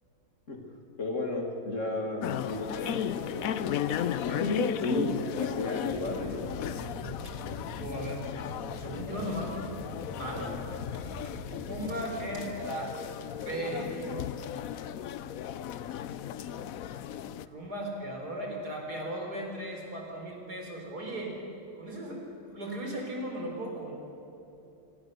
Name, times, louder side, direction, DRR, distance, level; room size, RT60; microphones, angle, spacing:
voice 1, 1.0-3.7 4.3-6.5, left 2 dB, 40° left, 1 dB, 2.6 m, -33 dB
sound 1, 2.2-17.5, left 10 dB, 65° left, 0.9 m, -35 dB
sound 2, 5.9-11.9, equal, 15° left, 3.0 m, -44 dB
voice 2, 7.8-9.6 10.2-10.6 11.4-12.9 13.4-13.9 17.5-21.3 21.7-22.2 22.5-23.9, right 1 dB, 55° right, 1 dB, 4.5 m, -37 dB
28.0 x 18.0 x 6.7 m, 3.0 s
omnidirectional pair, 2.0 m